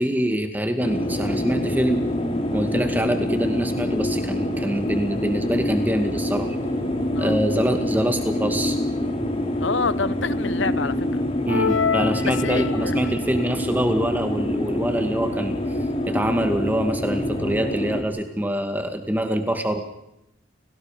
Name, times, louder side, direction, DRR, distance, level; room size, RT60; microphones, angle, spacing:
voice 1, 0.0-2.0 2.5-6.6 7.2-8.8 11.5-15.6 16.1-19.8, equal, 10° right, 6 dB, 2.2 m, -24 dB
sound 1, 0.8-18.0, left 1 dB, 30° left, 3.0 m, -26 dB
voice 2, 9.6-10.9 12.4-13.0, left 4 dB, 70° left, 16 dB, 0.9 m, -27 dB
sound 2, 11.5-13.1, left 6 dB, 85° left, 1.4 m, -26 dB
30.0 x 18.5 x 5.2 m, 0.85 s
head